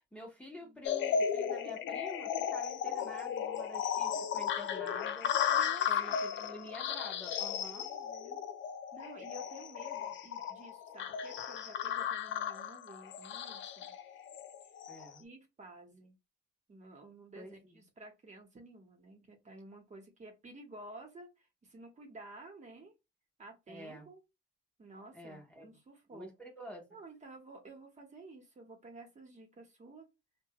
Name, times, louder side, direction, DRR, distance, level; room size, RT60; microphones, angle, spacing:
voice 1, 0.0-5.3 5.9-7.9 14.9-15.3 17.4-17.8 23.7-24.1 25.1-25.7 26.1-26.9, equal, 5° left, 1.0 m, -49 dB
sound 1, 0.8-15.1, left 8 dB, 70° left, 0.4 m, -35 dB
voice 2, 5.5-6.2 7.8-8.4 8.9-13.9 15.2-16.2 16.7-22.9 23.4-24.2 24.8-26.3 26.9-30.1, right 2 dB, 35° right, 1.1 m, -52 dB
3.0 x 2.3 x 2.9 m
cardioid pair, 90°, 20 cm